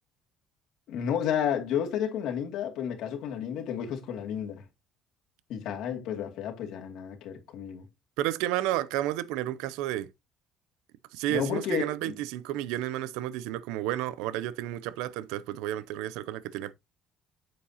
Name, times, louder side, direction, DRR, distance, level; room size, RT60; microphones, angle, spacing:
voice 1, 0.9-4.6 5.5-7.8 11.3-12.2, left 8 dB, 75° left, 2.4 m, -31 dB
voice 2, 8.2-10.1 11.1-16.7, right 14 dB, 90° right, 0.5 m, -31 dB
8.7 x 7.5 x 2.8 m
cardioid pair, 100°, 0 cm